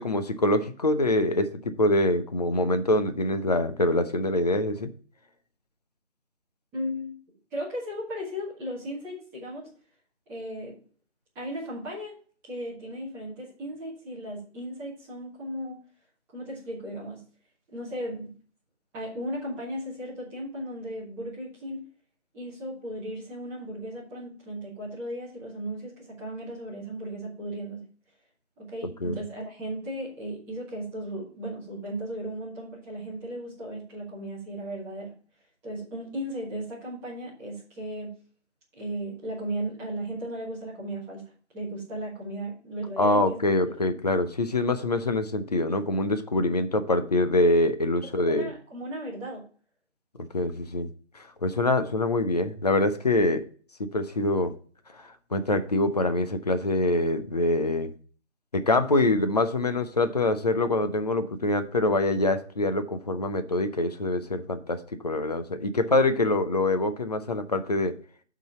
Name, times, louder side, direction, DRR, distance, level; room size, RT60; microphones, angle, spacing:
voice 1, 0.0-4.9 28.8-29.2 43.0-48.5 50.2-53.4 53.8-54.5 54.9-57.9 58.5-67.9, left 2 dB, 35° left, 9 dB, 0.7 m, -25 dB
voice 2, 6.7-7.1 7.5-9.7 10.3-10.8 11.3-12.1 12.4-15.8 16.3-17.2 17.7-18.3 18.9-21.8 22.3-27.9 28.6-35.1 35.6-38.2 38.7-43.8 48.0-49.5, equal, 5° right, -7 dB, 1.4 m, -36 dB
7.8 x 3.9 x 6.8 m, 0.42 s
figure-of-eight pair, 155°, 35 cm